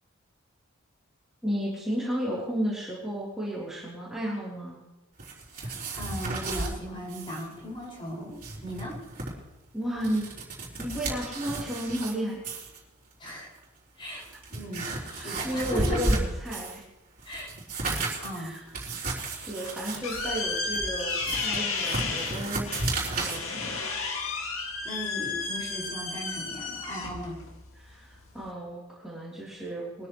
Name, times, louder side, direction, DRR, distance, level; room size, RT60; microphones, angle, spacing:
voice 1, 1.4-4.8 9.7-10.3 10.8-12.4 15.2-16.8 18.3-19.1 19.4-22.7 23.1-23.8 27.8-30.1, equal, ahead, -8 dB, 3.5 m, -33 dB
sound 1, 5.2-6.7 7.1-7.5 7.7-7.8 8.2-9.3 9.8-12.1 12.4-12.8 13.6-13.7 14.1-16.8 17.2-23.4, right 2 dB, 45° right, 3.9 m, -33 dB
voice 2, 5.5-9.0 13.2-13.5 14.0-16.2 17.2-18.5 24.4-24.6 24.8-27.4, equal, 25° left, -4 dB, 5.8 m, -38 dB
sound 2, 19.4-28.5, left 4 dB, 90° left, 2.2 m, -33 dB
22.5 x 13.5 x 3.2 m, 1.0 s
head